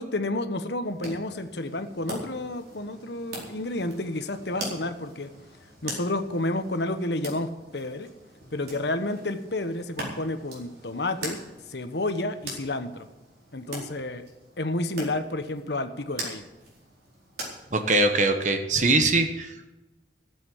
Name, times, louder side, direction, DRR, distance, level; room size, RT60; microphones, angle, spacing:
voice 1, 0.0-5.3 5.8-8.1 8.5-11.4 11.7-13.1 13.5-14.3 14.6-16.5, left 2 dB, 70° left, 9 dB, 1.1 m, -30 dB
sound 1, 0.8-18.2, right 1 dB, 60° right, 4.5 m, -42 dB
voice 2, 17.7-19.7, right 2 dB, 45° right, 7 dB, 1.2 m, -22 dB
14.5 x 7.7 x 8.5 m, 1.0 s
head